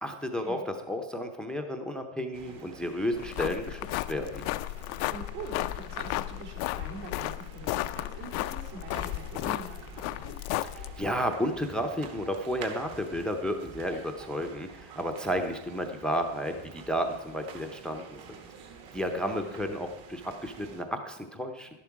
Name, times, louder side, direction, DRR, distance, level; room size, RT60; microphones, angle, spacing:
voice 1, 0.0-3.8 4.1-4.4 10.8-18.4 18.9-21.7, equal, ahead, 6 dB, 0.6 m, -32 dB
sound 1, 2.3-20.8, right 5 dB, 45° right, 1.5 m, -48 dB
sound 2, 3.1-11.1, left 17 dB, 90° left, 0.6 m, -34 dB
voice 2, 5.1-10.3 19.2-19.6, right 4 dB, 70° right, -2 dB, 3.5 m, -44 dB
12.0 x 11.0 x 4.7 m, 0.91 s
cardioid pair, 160°, 49 cm